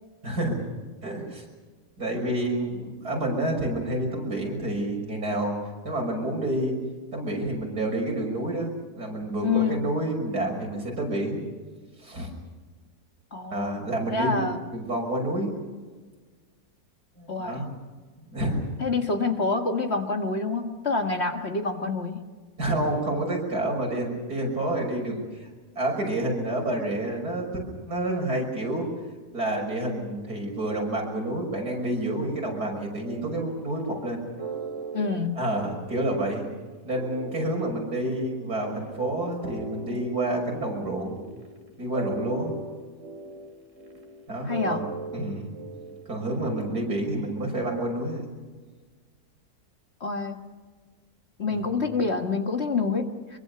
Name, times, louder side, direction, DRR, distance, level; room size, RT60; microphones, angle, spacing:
voice 1, 0.2-0.6 1.0-1.4 2.0-5.6 5.8-6.8 7.1-11.4 12.0-12.3 13.5-14.4 14.7-15.5 17.2-17.7 18.3-18.6 22.6-25.5 25.8-28.9 29.3-34.2 35.3-36.4 36.8-41.2 41.8-42.5 44.3-44.8 45.1-45.5 46.1-48.3 51.5-51.7, right 1 dB, 70° right, 0 dB, 6.6 m, -29 dB
voice 2, 9.4-9.8 13.3-13.8 14.1-14.6 17.3-17.7 18.8-22.3 34.9-35.5 44.5-44.9 50.0-50.4 51.4-53.4, left 4 dB, 40° left, 5 dB, 1.8 m, -27 dB
sound 1, 33.0-46.8, right 3 dB, 50° right, 2.8 m, -39 dB
24.5 x 23.5 x 6.9 m, 1.4 s
omnidirectional pair, 1.7 m